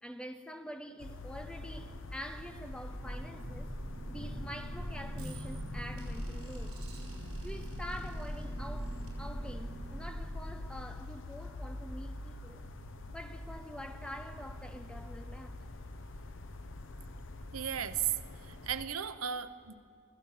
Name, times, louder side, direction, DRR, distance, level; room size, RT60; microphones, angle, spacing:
voice 1, 0.0-3.8 4.1-6.8 7.4-12.6 13.1-15.6, equal, 5° left, 0.8 m, -46 dB
sound 1, 1.0-18.9, left 1 dB, 60° left, 1.0 m, -45 dB
sound 2, 2.7-11.2, equal, 70° right, 4.5 m, -42 dB
voice 2, 17.5-18.1 18.5-19.8, right 9 dB, 85° right, 0.8 m, -35 dB
24.5 x 14.5 x 7.3 m
head